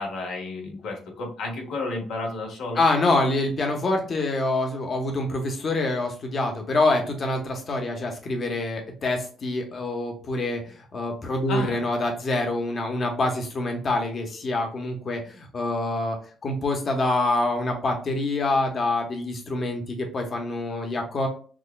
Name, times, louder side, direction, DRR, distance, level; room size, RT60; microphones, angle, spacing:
voice 1, 0.0-2.8 11.5-11.8, left 2 dB, 80° left, 0 dB, 1.4 m, -32 dB
voice 2, 2.7-16.2 16.4-21.3, left 2 dB, 45° left, 3 dB, 1.0 m, -26 dB
6.0 x 2.3 x 2.2 m, 0.42 s
cardioid pair, 90°, 0 cm